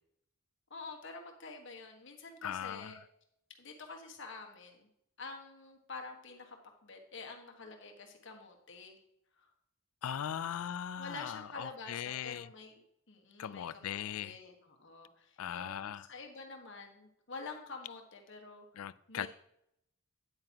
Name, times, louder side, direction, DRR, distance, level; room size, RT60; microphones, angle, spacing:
voice 1, 0.7-3.0 3.6-4.9 5.2-9.0 11.0-12.8 13.1-18.6 19.1-19.3, left 3 dB, 55° left, 1.5 m, -48 dB
voice 2, 2.4-3.0 10.0-12.5 13.4-14.4 15.4-16.1 18.8-19.3, left 9 dB, 75° left, 0.4 m, -39 dB
9.6 x 8.9 x 2.9 m
head